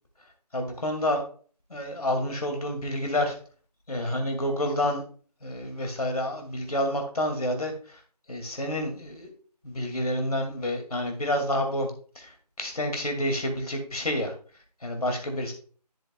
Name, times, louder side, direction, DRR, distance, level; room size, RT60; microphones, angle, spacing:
voice 1, 0.5-1.2 1.7-3.4 3.9-5.0 5.4-8.0 8.3-9.3 9.6-11.9 12.2-14.3 14.8-15.5, left 1 dB, 60° left, 4 dB, 2.5 m, -29 dB
11.0 x 7.5 x 2.4 m, 0.42 s
figure-of-eight pair, 160°, 21 cm